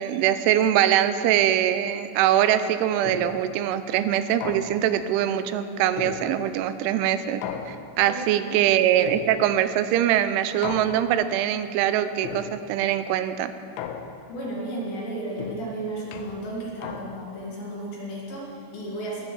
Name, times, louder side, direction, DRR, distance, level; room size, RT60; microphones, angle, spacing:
voice 1, 0.0-13.5, right 11 dB, 85° right, 11 dB, 3.0 m, -23 dB
sound 1, 3.1-3.6 4.4-5.1 6.0-6.7 7.4-8.2 9.1-9.8 10.6-11.4 12.2-12.9 13.8-14.5 15.4-17.4, left 8 dB, 85° left, 3.3 m, -37 dB
voice 2, 8.0-8.7 14.3-19.2, right 1 dB, 55° left, -4 dB, 3.6 m, -34 dB
21.0 x 7.3 x 7.1 m, 2.5 s
omnidirectional pair, 5.6 m